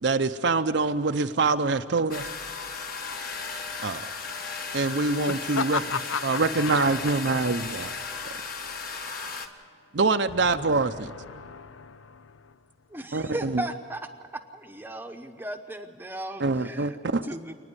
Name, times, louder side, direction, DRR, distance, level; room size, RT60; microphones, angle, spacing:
voice 1, 0.0-2.3 3.8-4.1 4.7-5.8 6.2-7.9 9.9-11.1 13.1-13.6 16.4-17.3, right 3 dB, 60° right, 8 dB, 0.6 m, -25 dB
sound 1, 2.1-9.5, left 5 dB, 45° left, 1.4 m, -35 dB
voice 2, 5.3-7.0 10.7-12.5, left 6 dB, 85° left, 15 dB, 0.7 m, -34 dB
voice 3, 12.9-14.0 14.5-17.5, right 1 dB, 10° right, 6 dB, 0.8 m, -36 dB
28.5 x 9.9 x 9.8 m, 2.3 s
head